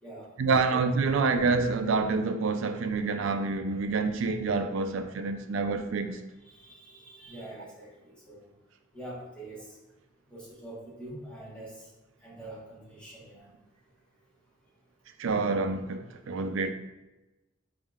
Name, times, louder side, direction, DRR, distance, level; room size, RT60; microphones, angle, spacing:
voice 1, 0.4-6.2 15.2-16.7, right 4 dB, 80° right, 8 dB, 0.4 m, -27 dB
voice 2, 6.4-8.4 8.9-9.7 10.3-11.8 12.2-13.5, right 1 dB, 5° left, -7 dB, 1.2 m, -45 dB
5.3 x 3.6 x 2.4 m, 1.0 s
head